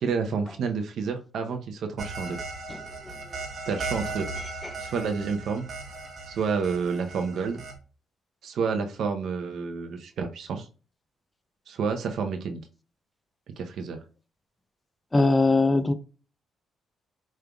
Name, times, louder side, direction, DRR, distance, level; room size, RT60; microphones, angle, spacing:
voice 1, 0.0-2.4 3.7-4.3 4.8-5.7 6.3-7.6 8.4-10.7 11.7-12.6 13.6-14.0, right 5 dB, 70° right, 0.7 m, -29 dB
sound 1, 2.0-7.8, right 3 dB, 45° right, 1.1 m, -37 dB
voice 2, 15.1-15.9, left 3 dB, 15° left, 0.5 m, -20 dB
5.1 x 3.3 x 2.3 m
cardioid pair, 90°, 0 cm